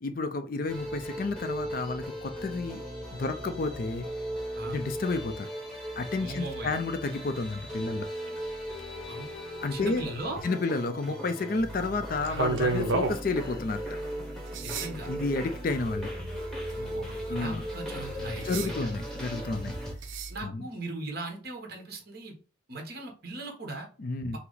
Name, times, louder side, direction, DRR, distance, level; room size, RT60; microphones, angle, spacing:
voice 1, 0.0-2.8 3.2-4.1 4.6-5.5 6.0-8.1 9.6-10.1 10.4-13.8 15.1-16.1 17.3-17.6 18.4-19.8 20.4-20.7 24.0-24.4, left 3 dB, 45° left, 8 dB, 0.4 m, -31 dB
sound 1, 0.7-19.9, equal, 5° left, 1.0 m, -38 dB
voice 2, 6.2-6.7 8.3-8.4 9.1-9.3 9.7-10.4 14.6-15.1 16.7-18.9 20.3-22.3 22.7-23.9, right 2 dB, 50° right, 2 dB, 1.2 m, -38 dB
sound 2, 11.6-20.4, right 3 dB, 70° right, 0.7 m, -35 dB
5.6 x 2.0 x 3.9 m, 0.38 s
head